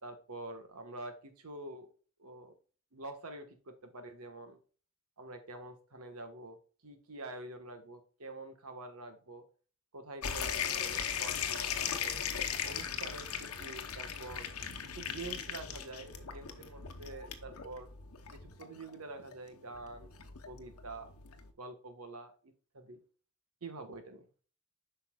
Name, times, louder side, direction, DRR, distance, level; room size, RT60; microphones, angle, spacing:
voice 1, 0.0-1.9 2.2-2.5 2.9-4.6 5.2-6.6 6.8-9.4 9.9-12.2 12.6-14.5 14.8-17.9 18.3-20.1 20.5-21.1 21.6-23.0 23.6-24.3, right 2 dB, 90° right, 7 dB, 1.3 m, -47 dB
sound 1, 10.2-21.5, left 7 dB, 85° left, 0.9 m, -38 dB
8.2 x 5.7 x 2.3 m, 0.38 s
head